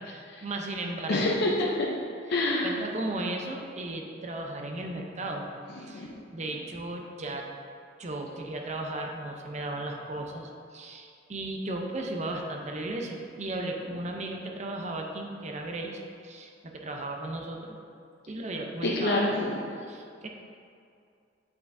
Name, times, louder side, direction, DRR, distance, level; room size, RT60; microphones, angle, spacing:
voice 1, 0.0-1.2 2.6-5.5 5.8-7.5 8.0-17.8 18.3-19.2 19.8-20.3, right 2 dB, 40° right, 2 dB, 0.7 m, -35 dB
voice 2, 1.1-1.9 2.3-2.7 5.8-6.1 18.8-19.6, left 2 dB, 60° left, -3 dB, 0.7 m, -26 dB
8.2 x 5.8 x 2.6 m, 2.4 s
head